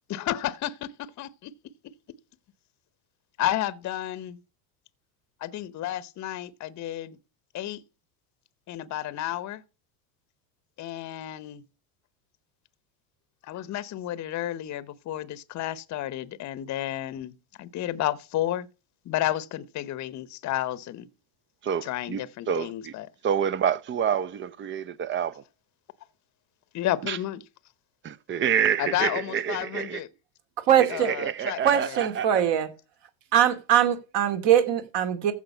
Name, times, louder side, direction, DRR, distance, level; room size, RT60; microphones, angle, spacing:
voice 1, 0.1-1.5 3.4-4.4 5.4-7.2 7.5-7.8 8.7-9.6 10.8-11.6 13.4-17.3 17.6-18.7 19.1-21.1 21.8-23.1 26.7-27.4 28.8-30.1 30.9-31.6 31.9-32.0, left 13 dB, 35° left, 0.9 m, -31 dB
voice 2, 21.6-22.9 23.2-25.4 27.0-27.2 28.0-30.0 30.9-32.4, right 8 dB, 25° right, 0.6 m, -28 dB
voice 3, 30.7-31.1 31.6-32.7 33.3-35.3, right 10 dB, 55° right, 2.5 m, -22 dB
14.5 x 5.0 x 5.5 m
hypercardioid pair, 95°, 50 cm